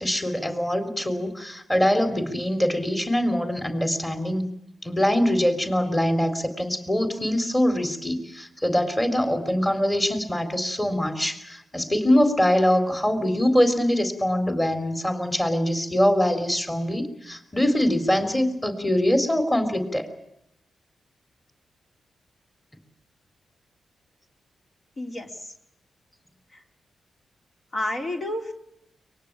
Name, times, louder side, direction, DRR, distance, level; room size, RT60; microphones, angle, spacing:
voice 1, 0.0-4.5 4.8-20.1, left 1 dB, 15° left, 8 dB, 4.0 m, -23 dB
voice 2, 25.0-25.5 26.5-26.6 27.7-28.5, left 1 dB, 50° left, 2 dB, 3.8 m, -30 dB
23.5 x 20.0 x 9.0 m, 0.79 s
cardioid pair, 60°, 0 cm